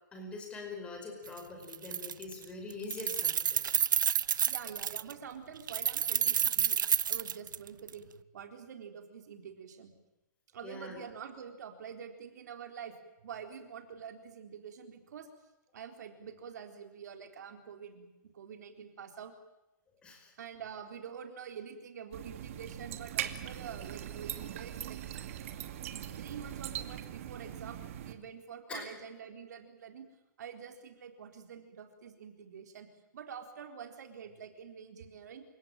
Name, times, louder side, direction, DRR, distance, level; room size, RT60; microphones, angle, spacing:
voice 1, 0.1-3.8 10.6-11.0 19.1-19.2 20.0-20.3 28.7-28.9, left 3 dB, 10° left, 3 dB, 5.3 m, -43 dB
Keys jangling, 1.3-1.4 1.7-2.4 2.7-5.1 5.7-7.9, right 8 dB, 75° right, 0.9 m, -29 dB
voice 2, 4.5-6.8 7.1-8.1 8.3-9.9 10.5-13.0 13.2-15.3 15.7-18.1 18.3-19.3 20.4-25.0 25.9-30.1 30.4-32.9 33.1-35.4, right 7 dB, 60° right, 6 dB, 4.0 m, -46 dB
sound 1, 22.1-28.1, right 11 dB, 40° right, 2.2 m, -41 dB
28.5 x 17.0 x 9.1 m, 0.97 s
hypercardioid pair, 165°, 11 cm